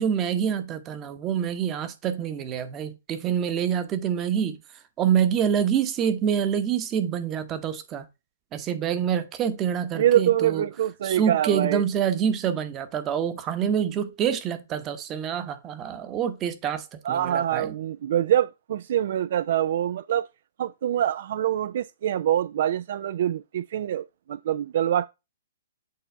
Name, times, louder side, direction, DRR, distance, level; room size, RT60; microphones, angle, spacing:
voice 1, 0.0-4.6 5.0-8.0 8.5-10.6 11.0-17.7, right 8 dB, 20° right, 0.9 m, -26 dB
voice 2, 9.9-11.8 17.0-20.3 20.6-25.1, right 11 dB, 55° right, 0.3 m, -25 dB
8.4 x 3.9 x 3.3 m
hypercardioid pair, 155°, 0 cm